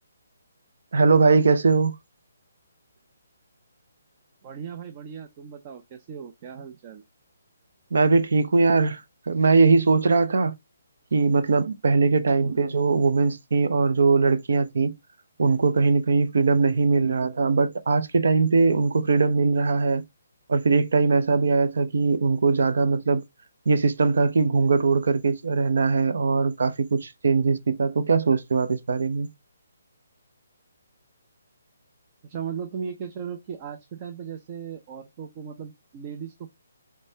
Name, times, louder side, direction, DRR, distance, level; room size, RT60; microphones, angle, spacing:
voice 1, 0.9-1.9 7.9-9.0 9.3-10.5 11.1-14.9 15.4-20.0 20.5-23.2 23.7-29.3, right 4 dB, 70° right, 0.7 m, -21 dB
voice 2, 4.4-7.0 12.3-12.6 16.9-17.2 32.2-36.6, right 7 dB, 30° right, 0.6 m, -37 dB
5.3 x 3.3 x 2.8 m
hypercardioid pair, 150°, 0 cm